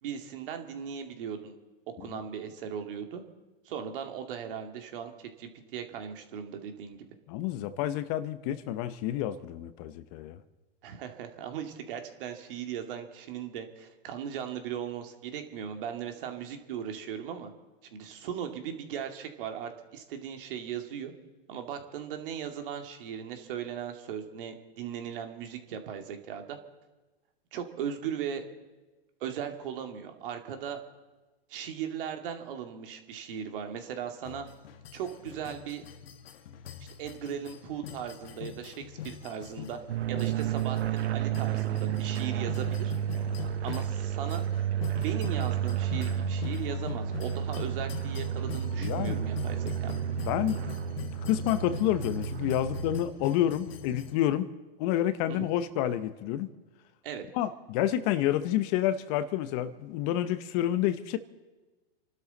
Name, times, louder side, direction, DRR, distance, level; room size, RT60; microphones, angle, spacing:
voice 1, 0.0-1.6 2.0-3.2 3.7-7.1 10.8-17.5 17.9-21.1 21.5-26.6 27.5-28.4 29.2-30.8 31.5-34.5 34.9-35.8 37.0-39.8 40.1-42.9 43.6-44.4 45.0-50.0 55.3-55.5 57.0-57.3, right 8 dB, 60° right, 6 dB, 2.3 m, -38 dB
voice 2, 7.3-10.4 48.8-49.2 50.3-50.6 51.2-54.5 54.8-56.5 57.3-61.2, left 12 dB, 40° left, 13 dB, 0.9 m, -29 dB
sound 1, 34.2-54.1, left 9 dB, 65° left, 1.4 m, -43 dB
Spitfire slow OH, 39.9-53.0, right 9 dB, 85° right, 0.8 m, -31 dB
28.5 x 12.5 x 4.0 m, 1.2 s
hypercardioid pair, 130°, 31 cm